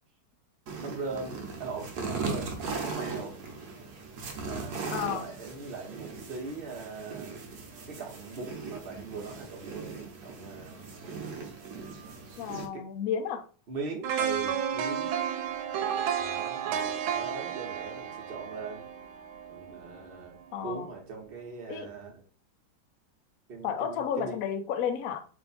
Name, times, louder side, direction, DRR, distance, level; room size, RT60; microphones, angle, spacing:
sound 1, 0.7-12.7, right 4 dB, 65° right, 1.2 m, -38 dB
voice 1, 0.8-3.4 4.4-7.4 7.9-10.8 12.7-12.8 13.7-15.1 16.2-18.9 19.5-22.2 23.5-24.4, right 4 dB, 40° right, 0 dB, 0.9 m, -40 dB
voice 2, 4.9-5.3 12.4-13.4 20.5-20.9 21.7-21.9 23.6-25.2, left 8 dB, 75° left, 6 dB, 0.8 m, -32 dB
sound 2, 14.0-20.1 20.4-20.6, right 8 dB, 90° right, 1.3 m, -32 dB
3.2 x 2.7 x 4.1 m, 0.38 s
omnidirectional pair, 2.1 m